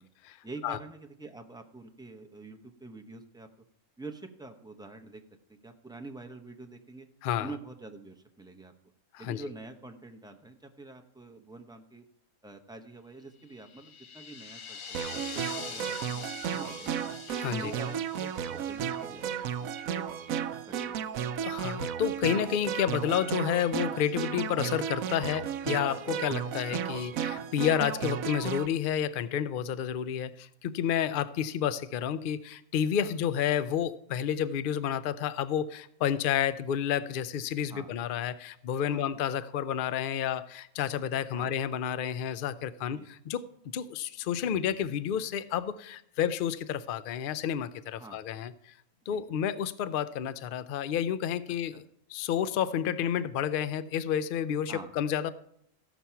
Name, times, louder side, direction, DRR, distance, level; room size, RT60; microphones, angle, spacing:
voice 1, 0.4-3.5 4.0-5.2 5.5-7.1 7.4-8.7 9.2-12.0 12.4-17.1 17.6-19.7 19.9-20.0 20.7-21.0 21.4-21.6 33.0-33.1 37.7-37.9 38.9-39.2 41.3-41.5 42.9-43.1 48.0-48.2 49.1-49.2 51.7-51.8 54.7-55.0, right 3 dB, 5° right, 3 dB, 0.4 m, -46 dB
sound 1, 13.5-19.7, left 6 dB, 45° left, 0.8 m, -44 dB
sound 2, 14.9-28.7, right 8 dB, 75° right, 1.0 m, -34 dB
voice 2, 17.3-17.7 21.4-43.4 43.7-48.7 49.1-51.8 52.1-55.3, left 9 dB, 85° left, 15 dB, 0.4 m, -30 dB
14.5 x 6.1 x 5.7 m, 0.75 s
omnidirectional pair, 1.5 m